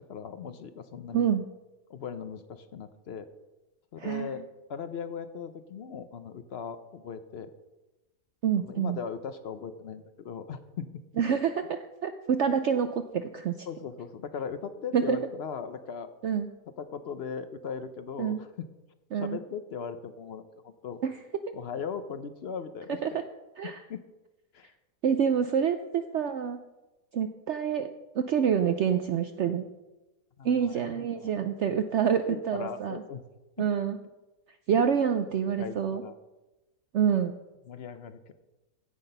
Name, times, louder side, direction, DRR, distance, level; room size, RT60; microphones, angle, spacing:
voice 1, 0.1-1.3 1.9-3.3 3.9-4.4 4.7-7.5 8.6-10.9 13.7-16.1 16.8-18.7 19.2-21.0 21.5-23.3 23.9-24.0 24.5-24.7 30.4-31.3 32.3-33.2 33.6-33.7 35.6-36.1 37.7-38.3, left 6 dB, 60° left, 11 dB, 0.6 m, -38 dB
voice 2, 1.1-1.4 4.0-4.4 8.4-9.0 11.2-13.7 14.9-15.2 16.2-16.5 18.2-18.4 19.1-19.4 21.0-21.2 21.5-21.6 23.0-23.2 23.6-23.8 25.0-26.6 27.1-27.9 28.1-29.6 30.4-33.0 33.6-34.0 34.7-36.0 36.9-37.3, right 7 dB, 70° right, 9 dB, 0.6 m, -27 dB
16.0 x 5.9 x 5.4 m, 1.1 s
omnidirectional pair, 1.7 m